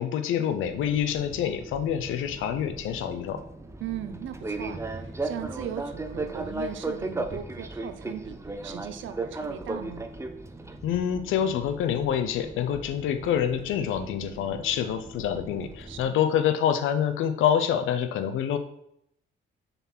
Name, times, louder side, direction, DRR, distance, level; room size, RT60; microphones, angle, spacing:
voice 1, 0.0-3.4 10.8-18.6, left 9 dB, 85° left, 9 dB, 0.7 m, -26 dB
Fixed-wing aircraft airplane, 0.6-16.0, right 2 dB, 15° right, 0.6 m, -37 dB
voice 2, 3.8-8.4 8.6-10.0 15.9-16.3, right 10 dB, 75° right, 9 dB, 0.8 m, -38 dB
6.8 x 4.2 x 4.5 m, 0.74 s
cardioid pair, 90°, 20 cm